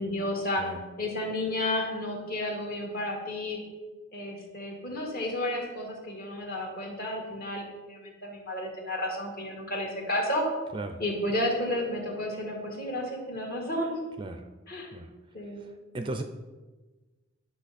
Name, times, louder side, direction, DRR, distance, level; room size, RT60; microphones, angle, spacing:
voice 1, 0.0-0.6 1.0-3.6 4.1-10.4 11.0-13.9 14.7-14.9 15.3-15.6, left 1 dB, 45° left, 0 dB, 1.9 m, -32 dB
voice 2, 0.6-0.8 10.7-11.0 14.2-14.4 14.9-15.1 15.9-16.2, right 2 dB, 25° right, 6 dB, 0.4 m, -35 dB
10.5 x 5.4 x 4.2 m, 1.3 s
head